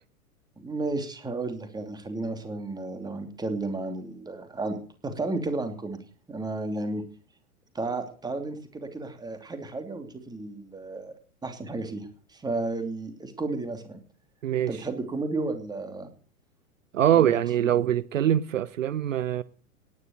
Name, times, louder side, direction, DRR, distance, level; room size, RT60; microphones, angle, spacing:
voice 1, 0.6-4.8 5.0-6.0 6.3-7.0 7.7-11.1 11.4-14.0 14.7-16.1 17.1-17.8, right 2 dB, 10° right, 2.9 m, -33 dB
voice 2, 14.4-14.8 16.9-19.4, right 11 dB, 60° right, 0.8 m, -23 dB
18.0 x 11.0 x 6.5 m
figure-of-eight pair, 100°, 44 cm